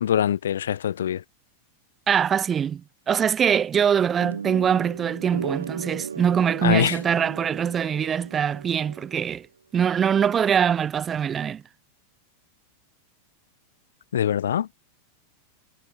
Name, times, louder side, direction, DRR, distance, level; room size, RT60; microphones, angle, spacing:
voice 1, 0.0-1.2 6.6-7.0 14.1-14.7, left 9 dB, 65° left, 1.2 m, -23 dB
voice 2, 2.1-2.8 3.1-9.5 9.7-11.6, right 8 dB, 25° right, 0.9 m, -23 dB
sound 1, 4.2-9.3, right 6 dB, 70° right, 3.3 m, -36 dB
figure-of-eight pair, 90°, 0 cm